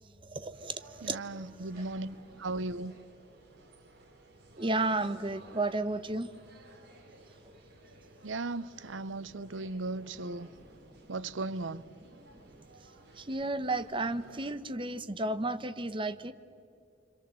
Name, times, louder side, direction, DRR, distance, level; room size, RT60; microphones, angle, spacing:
voice 1, 0.2-1.8 4.6-6.3 7.4-7.5 9.5-9.7 10.1-10.2 10.4-11.1 12.6-12.7 13.2-16.3, right 2 dB, 25° right, 1.0 m, -34 dB
sound 1, 0.5-14.6, right 2 dB, 60° right, 4.3 m, -56 dB
voice 2, 1.0-2.9 8.2-10.5 11.1-11.8, right 2 dB, 85° right, 0.7 m, -37 dB
26.0 x 26.0 x 7.6 m
head